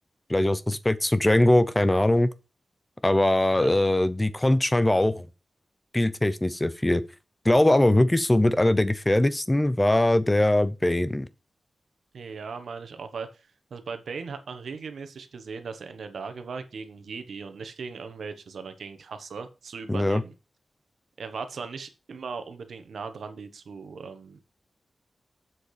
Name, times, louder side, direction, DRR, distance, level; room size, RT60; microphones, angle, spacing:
voice 1, 0.3-2.3 3.0-5.3 5.9-7.0 7.4-11.3 19.9-20.2, left 1 dB, 10° left, 0.6 m, -21 dB
voice 2, 12.1-20.3 21.2-24.4, right 5 dB, 85° right, 1.3 m, -38 dB
7.6 x 6.7 x 4.9 m
wide cardioid pair, 155°, 0 cm